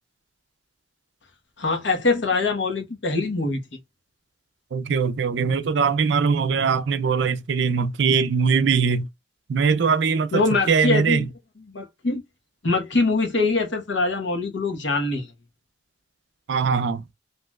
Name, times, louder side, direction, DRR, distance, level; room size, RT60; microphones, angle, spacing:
voice 1, 1.6-3.6 10.3-11.3 11.7-12.2 12.6-15.3, left 3 dB, 80° left, 1.0 m, -23 dB
voice 2, 4.7-9.1 9.5-11.2 16.5-17.0, right 5 dB, 70° right, 0.4 m, -21 dB
3.0 x 2.8 x 2.3 m
head